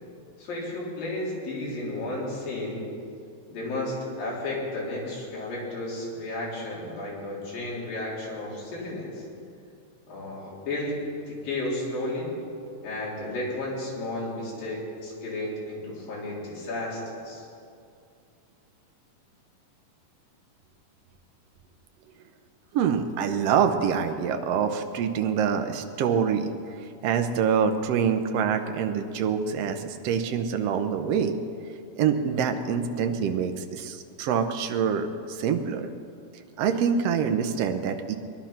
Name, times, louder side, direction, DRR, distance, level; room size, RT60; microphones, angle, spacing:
voice 1, 0.4-2.8 3.5-9.2 10.1-11.0 11.3-12.3 12.8-17.5, left 2 dB, 80° left, -5 dB, 5.6 m, -33 dB
voice 2, 22.7-26.5 27.0-31.4 31.9-35.9 36.6-38.1, right 7 dB, 75° right, 6 dB, 1.5 m, -25 dB
21.0 x 11.5 x 5.9 m, 2.4 s
omnidirectional pair, 3.9 m